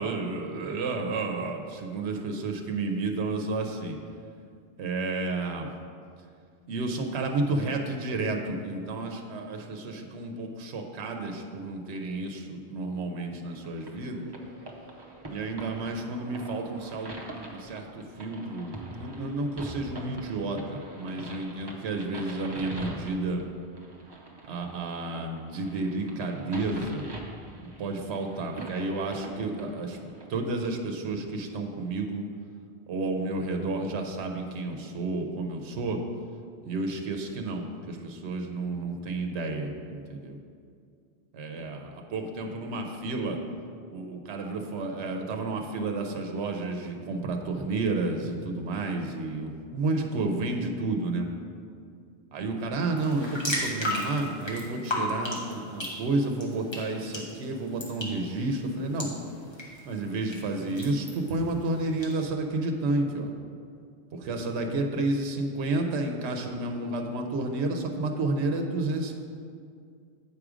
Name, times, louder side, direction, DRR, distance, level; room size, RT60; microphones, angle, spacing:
voice 1, 0.0-4.0 4.8-5.7 6.7-14.3 15.2-23.4 24.4-27.1 27.8-30.0 30.3-32.3 32.9-36.0 36.6-40.4 41.3-43.4 43.9-51.3 52.3-59.1 59.9-63.3 64.1-69.1, right 2 dB, 80° right, 3 dB, 1.0 m, -31 dB
sound 1, 13.5-30.3, right 1 dB, 25° right, 0.7 m, -44 dB
sound 2, 53.0-62.1, left 1 dB, 25° left, 1.3 m, -36 dB
8.4 x 4.9 x 4.9 m, 2.3 s
omnidirectional pair, 1.1 m